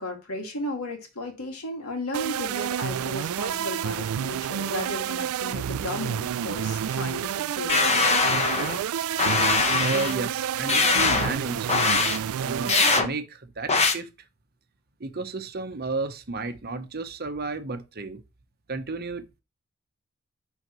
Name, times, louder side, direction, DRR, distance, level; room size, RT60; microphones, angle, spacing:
voice 1, 0.0-7.8, left 1 dB, 80° left, 2.2 m, -34 dB
sound 1, 2.1-13.0, right 9 dB, 70° right, 0.3 m, -29 dB
sound 2, 7.7-8.8 9.2-10.2 10.7-11.3 11.7-12.2 12.7-13.1 13.7-13.9, left 4 dB, 30° left, 0.9 m, -22 dB
voice 2, 9.8-11.7 12.3-14.1 15.0-18.2 18.7-19.4, right 3 dB, 45° right, 0.9 m, -32 dB
10.5 x 4.0 x 3.0 m
head